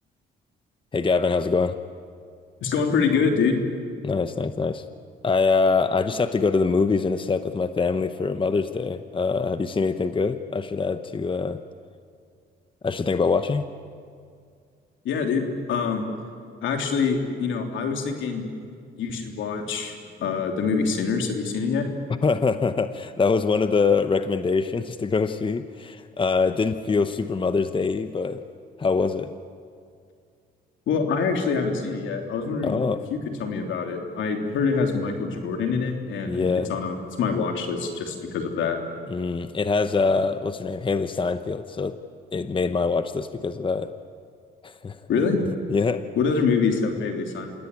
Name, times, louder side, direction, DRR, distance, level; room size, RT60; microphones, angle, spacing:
voice 1, 0.9-1.8 4.0-4.8 5.2-11.6 12.8-13.6 22.2-28.4 28.8-29.3 32.6-33.0 36.3-36.7 39.1-42.0 42.3-43.9 44.6-45.0 45.7-46.0, left 4 dB, 25° left, 10 dB, 0.9 m, -24 dB
voice 2, 2.6-3.6 15.0-16.1 16.6-18.5 19.0-19.9 20.2-21.9 30.9-32.8 33.1-38.8 45.1-45.4 46.2-47.6, left 5 dB, 75° left, 4 dB, 3.3 m, -25 dB
27.5 x 17.0 x 9.8 m, 2.3 s
cardioid pair, 90°, 20 cm